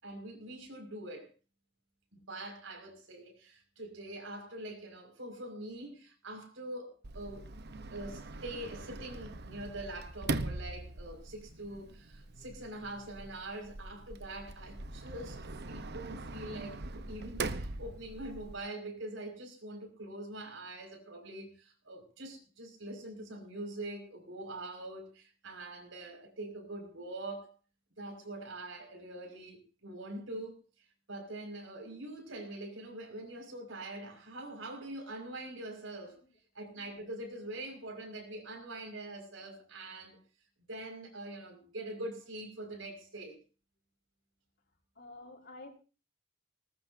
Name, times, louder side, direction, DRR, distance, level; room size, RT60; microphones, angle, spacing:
voice 1, 0.0-1.3 2.1-7.5 7.9-27.5 28.0-30.5 31.1-36.2 36.5-40.2 40.7-43.4, right 1 dB, 75° right, 6.0 m, -44 dB
Sliding door, 7.0-18.6, right 2 dB, 55° right, 1.0 m, -41 dB
voice 2, 44.9-45.7, left 2 dB, 55° left, 5.1 m, -49 dB
20.0 x 19.5 x 2.8 m
head